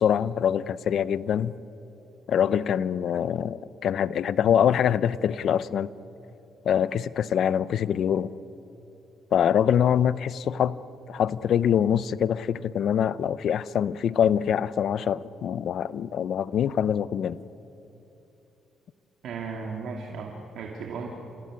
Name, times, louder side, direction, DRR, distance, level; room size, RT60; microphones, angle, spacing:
voice 1, 0.0-1.5 2.3-5.9 6.6-8.3 9.3-10.8 11.1-17.4, left 9 dB, 65° left, 17 dB, 0.7 m, -24 dB
voice 2, 19.2-21.1, right 5 dB, 75° right, 1 dB, 2.5 m, -35 dB
28.5 x 16.5 x 9.7 m, 3.0 s
cardioid pair, 90°, 0 cm